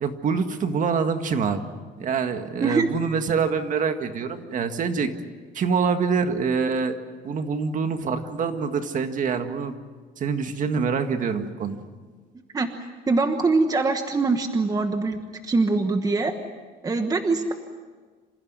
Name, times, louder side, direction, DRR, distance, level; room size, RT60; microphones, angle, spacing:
voice 1, 0.0-1.6 2.0-5.1 5.5-7.0 7.2-9.7 10.2-11.8, right 5 dB, 45° right, 7 dB, 1.8 m, -25 dB
voice 2, 13.1-16.3 16.8-17.5, right 3 dB, 20° right, 6 dB, 1.2 m, -23 dB
27.5 x 15.5 x 9.6 m, 1.5 s
cardioid pair, 145°, 19 cm